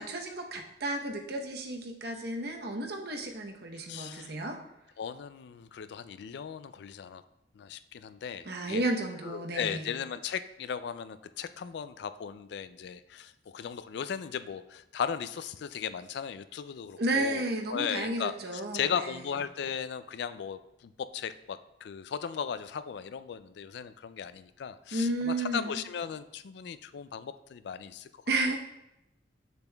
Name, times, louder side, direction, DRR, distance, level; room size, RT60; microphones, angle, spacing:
voice 1, 0.0-4.6 8.4-9.9 17.0-19.1 24.9-25.8 28.3-28.6, right 2 dB, 65° right, 3 dB, 0.9 m, -32 dB
voice 2, 3.9-4.3 5.0-7.2 7.6-8.8 9.2-28.1 28.5-28.6, left 7 dB, 65° left, 13 dB, 0.3 m, -37 dB
8.0 x 6.8 x 2.3 m, 0.89 s
head